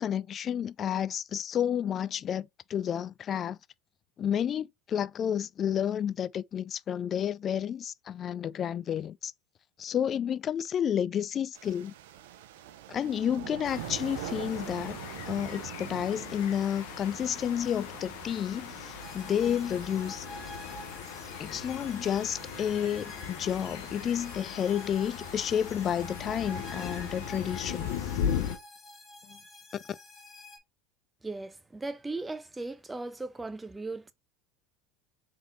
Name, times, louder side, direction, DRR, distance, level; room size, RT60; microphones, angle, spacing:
voice 1, 0.0-3.6 4.2-9.3 9.8-11.9 12.9-15.0 15.3-20.3 21.4-27.9 29.3-29.4, left 9 dB, 40° left, 0.3 m, -31 dB
sound 1, 11.5-28.2, right 12 dB, 80° right, 0.6 m, -46 dB
sound 2, 13.6-28.6, left 8 dB, 75° left, 0.8 m, -38 dB
sound 3, 19.0-30.6, left 1 dB, 20° left, 1.6 m, -48 dB
voice 2, 31.2-34.1, right 3 dB, 15° right, 0.7 m, -37 dB
3.6 x 3.6 x 4.1 m
hypercardioid pair, 90°, 0 cm